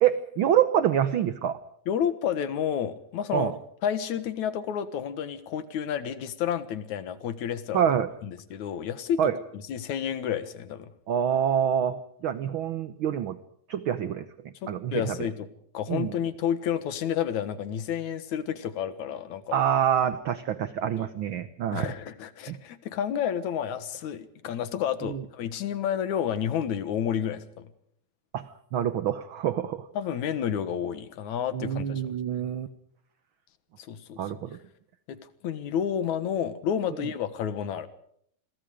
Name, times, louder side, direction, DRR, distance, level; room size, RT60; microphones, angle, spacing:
voice 1, 0.0-1.6 3.3-3.5 7.7-8.1 9.2-9.4 11.1-12.0 12.2-13.4 13.7-14.2 14.7-15.2 15.9-16.1 19.5-21.9 22.5-22.6 25.1-25.2 28.3-28.4 28.7-29.9 31.5-32.7 34.2-34.5, right 9 dB, 60° right, 13 dB, 1.4 m, -26 dB
voice 2, 1.9-3.6 3.8-7.8 8.2-10.9 14.6-15.5 15.7-19.6 21.0-21.1 21.7-27.7 30.0-32.0 33.8-34.3 35.1-35.2 35.4-37.9, left 9 dB, 75° left, 13 dB, 2.8 m, -30 dB
28.5 x 22.5 x 5.0 m, 0.67 s
omnidirectional pair, 3.4 m